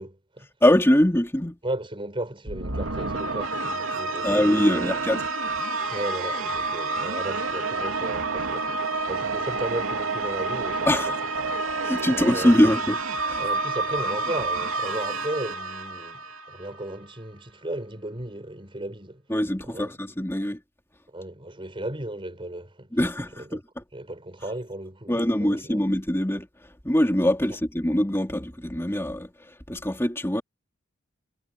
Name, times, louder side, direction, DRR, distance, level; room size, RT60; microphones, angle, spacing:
voice 1, 0.0-0.5 1.6-5.0 5.9-11.2 12.1-12.8 13.4-19.2 19.6-20.0 21.1-22.9 23.3-23.6 23.9-25.8 27.5-27.6, right 1 dB, 25° right, 5.3 m, -35 dB
voice 2, 0.6-1.6 4.2-5.2 10.8-11.2 11.8-13.0 13.3-13.4 19.3-20.6 22.9-23.6 25.1-26.5 26.8-29.3 29.7-30.4, left 1 dB, 10° left, 3.1 m, -23 dB
sound 1, 2.5-16.8, right 3 dB, 80° right, 2.9 m, -29 dB
head